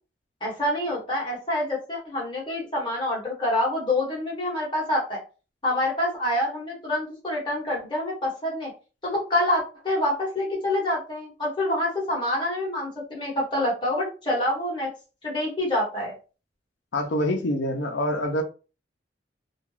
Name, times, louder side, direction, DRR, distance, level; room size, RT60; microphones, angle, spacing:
voice 1, 0.4-5.2 5.6-8.7 9.0-14.9 15.2-16.1, left 1 dB, 25° left, -4 dB, 1.1 m, -26 dB
voice 2, 16.9-18.4, left 1 dB, 60° left, 4 dB, 0.5 m, -25 dB
2.3 x 2.3 x 3.2 m, 0.34 s
head